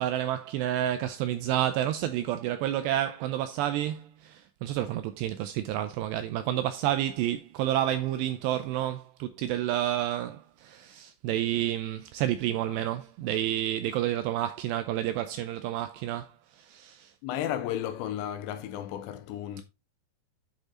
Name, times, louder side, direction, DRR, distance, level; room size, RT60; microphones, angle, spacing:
voice 1, 0.0-17.1, right 12 dB, 85° right, 2.4 m, -30 dB
voice 2, 17.2-19.6, left 11 dB, 85° left, 2.8 m, -33 dB
8.8 x 5.1 x 3.8 m
omnidirectional pair, 5.4 m